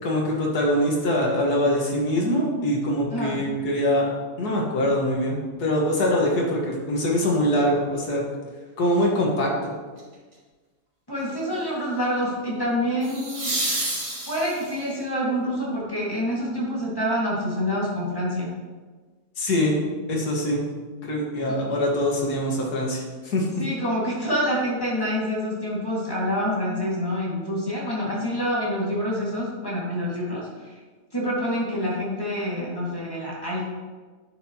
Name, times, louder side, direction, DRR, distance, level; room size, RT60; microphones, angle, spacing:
voice 1, 0.0-4.1 4.4-8.2 8.8-9.7 19.4-19.7 20.1-20.6 21.0-23.5, left 1 dB, 85° left, -2 dB, 2.1 m, -23 dB
sound 1, 10.0-10.3 13.0-14.9 17.8-17.9, right 1 dB, 70° right, 2.8 m, -29 dB
voice 2, 11.1-13.5 14.3-18.5 21.5-21.7 23.6-30.5 31.1-33.6, equal, 15° left, -6 dB, 1.9 m, -27 dB
10.5 x 6.1 x 2.9 m, 1.4 s
omnidirectional pair, 1.7 m